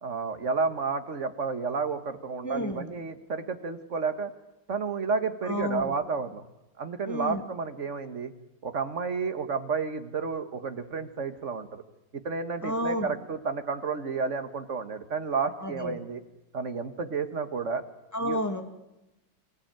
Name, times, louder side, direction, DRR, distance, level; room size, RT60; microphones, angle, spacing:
voice 1, 0.0-4.3 4.7-6.4 6.8-8.3 8.6-11.8 12.1-16.2 16.5-17.8 18.2-18.4, right 5 dB, 40° right, 9 dB, 1.7 m, -31 dB
voice 2, 2.4-2.9 5.4-5.9 7.1-7.4 12.6-13.1 15.6-16.0 18.1-18.6, equal, 10° left, 5 dB, 2.4 m, -31 dB
25.5 x 16.5 x 9.1 m, 0.94 s
omnidirectional pair, 2.2 m